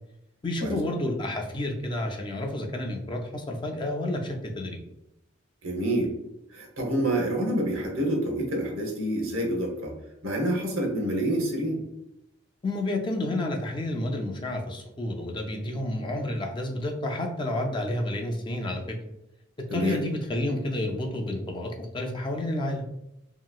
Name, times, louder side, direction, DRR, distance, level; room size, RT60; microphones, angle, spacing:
voice 1, 0.4-4.8 12.6-19.0 19.7-22.8, left 1 dB, 25° left, 2 dB, 0.3 m, -30 dB
voice 2, 5.6-6.1 6.5-9.9 10.2-11.8 19.7-20.0, right 1 dB, 85° right, 0 dB, 0.9 m, -27 dB
2.9 x 2.8 x 2.3 m, 0.87 s
head